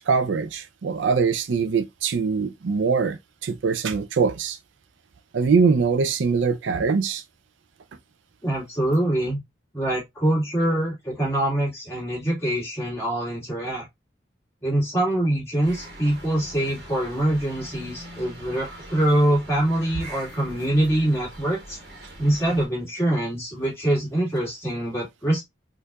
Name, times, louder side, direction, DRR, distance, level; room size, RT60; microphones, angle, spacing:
voice 1, 0.0-4.6 5.3-7.2, right 5 dB, 80° right, 0.4 m, -23 dB
voice 2, 8.4-9.4 9.7-13.9 14.6-21.8 22.2-25.4, right 1 dB, 15° left, 2.1 m, -24 dB
sound 1, 15.6-22.7, equal, 60° right, 1.2 m, -42 dB
4.4 x 2.5 x 2.3 m
head